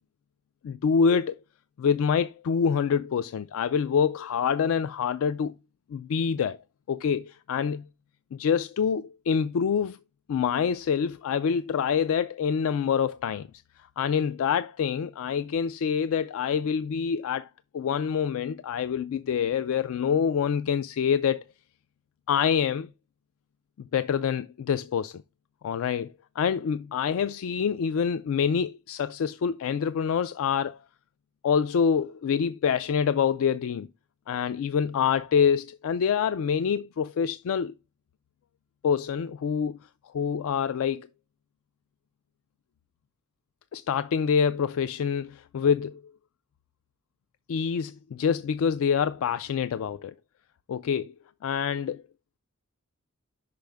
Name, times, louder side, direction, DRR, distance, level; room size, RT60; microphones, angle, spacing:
voice 1, 0.6-1.4 1.8-5.5 5.9-6.6 6.9-7.9 8.3-10.0 10.3-13.5 14.0-17.5 17.7-21.4 22.3-22.9 23.8-25.2 25.6-30.8 31.4-33.9 34.3-37.7 38.8-39.8 40.1-41.1 43.7-46.1 47.5-50.1 50.7-51.1 51.4-52.0, left 7 dB, 65° left, 0.3 m, -26 dB
5.6 x 5.1 x 3.4 m
head